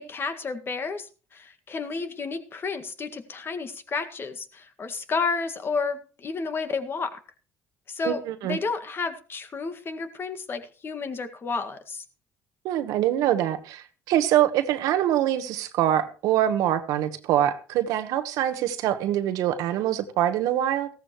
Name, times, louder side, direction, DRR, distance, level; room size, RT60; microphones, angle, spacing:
voice 1, 0.0-7.2 7.9-12.0, left 4 dB, 40° left, 1.9 m, -31 dB
voice 2, 8.0-8.6 12.6-20.9, right 12 dB, 75° right, 1.2 m, -24 dB
15.5 x 14.0 x 3.1 m
supercardioid pair, 80°, 6 cm